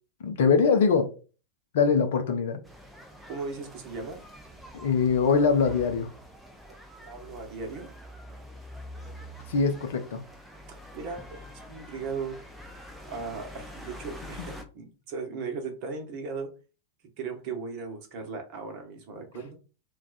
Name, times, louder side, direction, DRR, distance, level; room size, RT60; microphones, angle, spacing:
voice 1, 0.2-1.1 1.7-2.6 4.7-6.1 9.5-10.2, left 5 dB, 55° left, 0.5 m, -23 dB
sound 1, 2.6-14.6, equal, 5° right, 0.6 m, -46 dB
voice 2, 3.3-4.2 7.0-7.9 10.7-12.4 13.1-16.5 17.2-19.5, right 4 dB, 45° right, 1.0 m, -37 dB
2.4 x 2.3 x 3.9 m
figure-of-eight pair, 90°, 0 cm